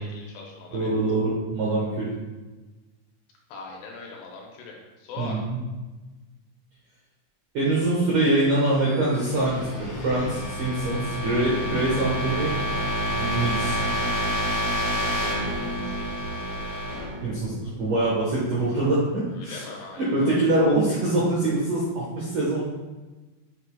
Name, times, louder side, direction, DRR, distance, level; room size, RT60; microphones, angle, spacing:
voice 1, 0.0-0.9 3.5-5.4 15.8-16.8 19.3-20.5, left 3 dB, 75° left, -1 dB, 2.7 m, -41 dB
voice 2, 0.7-2.1 5.2-5.6 7.5-12.7 13.1-13.8 17.2-19.6 20.0-22.6, right 2 dB, 75° right, -6 dB, 1.9 m, -24 dB
sound 1, 8.5-18.2, equal, 50° left, 2.4 m, -29 dB
8.1 x 6.8 x 2.2 m, 1.2 s
omnidirectional pair, 5.3 m